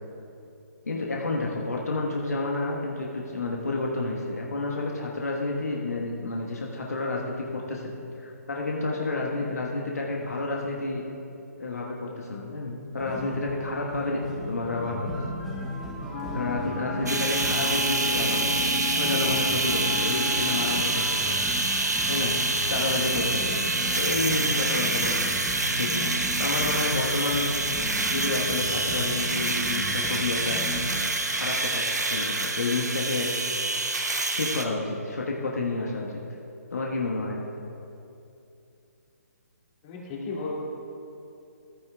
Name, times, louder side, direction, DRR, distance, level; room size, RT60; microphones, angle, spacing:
voice 1, 0.8-7.9 8.2-11.0 11.6-14.2 14.5-15.1 16.3-18.7 18.9-21.4 22.1-22.4 22.7-23.6 23.9-25.2 25.7-26.1 26.4-27.5 28.0-30.6 31.3-33.3 34.4-36.2 36.7-37.4, left 3 dB, 70° left, -2 dB, 1.4 m, -30 dB
sound 1, 13.0-31.0, equal, ahead, 1.4 m, -36 dB
Wind instrument woodwind instrument, 16.1-20.9, left 4 dB, 45° left, 0.7 m, -35 dB
sound 2, 17.1-34.6, right 2 dB, 85° right, 1.0 m, -27 dB
voice 2, 39.8-40.5, left 4 dB, 30° left, -4 dB, 2.4 m, -36 dB
14.5 x 14.5 x 2.4 m, 2.8 s
figure-of-eight pair, 140°, 9 cm